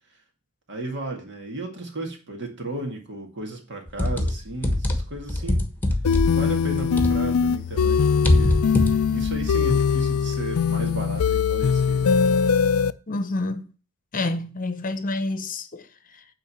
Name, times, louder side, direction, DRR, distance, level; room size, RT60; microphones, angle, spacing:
voice 1, 0.7-5.7 6.3-8.6 9.1-12.4, right 2 dB, 55° right, 2.2 m, -34 dB
sound 1, 3.9-7.5 7.8-9.4, left 1 dB, 10° left, 1.3 m, -23 dB
sound 2, 6.0-12.9, left 6 dB, 80° left, 0.4 m, -21 dB
voice 2, 13.1-13.7 14.1-15.9, left 2 dB, 40° left, 0.9 m, -28 dB
9.4 x 3.9 x 7.2 m
head